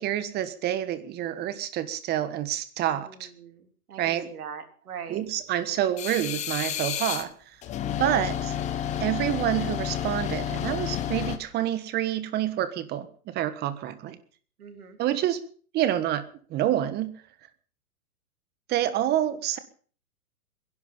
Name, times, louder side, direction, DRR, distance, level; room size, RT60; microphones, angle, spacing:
voice 1, 0.0-3.3 4.0-4.3 5.1-7.6 8.0-8.5 9.0-14.2 15.0-15.4 15.7-16.2 16.5-17.1 18.7-19.6, right 12 dB, 20° right, 13 dB, 1.5 m, -28 dB
voice 2, 2.9-5.2 8.0-8.2 14.6-15.0, right 7 dB, 75° right, 7 dB, 3.5 m, -42 dB
sound 1, 6.0-7.2 7.6-11.4, left 10 dB, 15° left, 0.9 m, -30 dB
23.0 x 11.0 x 5.4 m, 0.44 s
hypercardioid pair, 140°, 45 cm